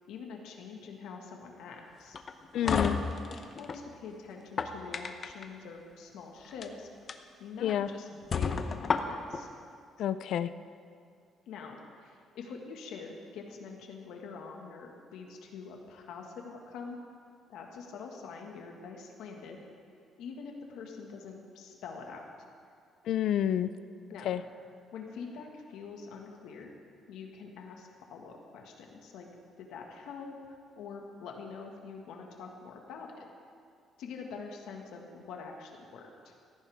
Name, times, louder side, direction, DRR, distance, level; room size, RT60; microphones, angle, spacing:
voice 1, 0.1-2.2 2.8-3.0 3.3-6.9 7.4-9.5 11.5-17.0 17.5-19.6 20.2-22.3 24.1-24.4 24.9-26.7 27.1-29.3 29.6-33.3 34.0-36.4, left 5 dB, 90° left, 1 dB, 1.8 m, -45 dB
sound 1, 2.1-3.8 4.4-5.5 6.4-6.7 7.1-7.2 7.7-7.8 8.3-9.4, left 5 dB, 35° left, 0.7 m, -31 dB
voice 2, 2.5-3.0 7.6-7.9 10.0-10.5 23.1-23.7 24.2-24.4, left 10 dB, 65° left, 13 dB, 0.5 m, -28 dB
17.0 x 14.0 x 3.6 m, 2.3 s
cardioid pair, 150°, 0 cm